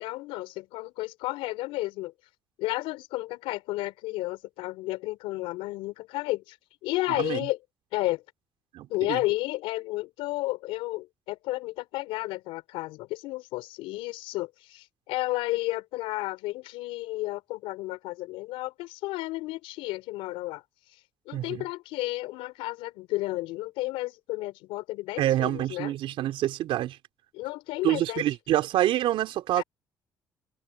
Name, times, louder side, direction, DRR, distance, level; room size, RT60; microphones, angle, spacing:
voice 1, 0.0-2.1 2.6-6.6 6.8-7.6 7.9-8.2 8.9-20.6 21.2-25.9 27.3-28.2 29.6-29.7, left 19 dB, 90° left, 5.3 m, -32 dB
voice 2, 7.1-7.4 8.7-9.2 21.3-21.6 25.2-27.0 27.8-29.6, right 13 dB, 80° right, 3.7 m, -27 dB
open air
supercardioid pair, 65°, 9 cm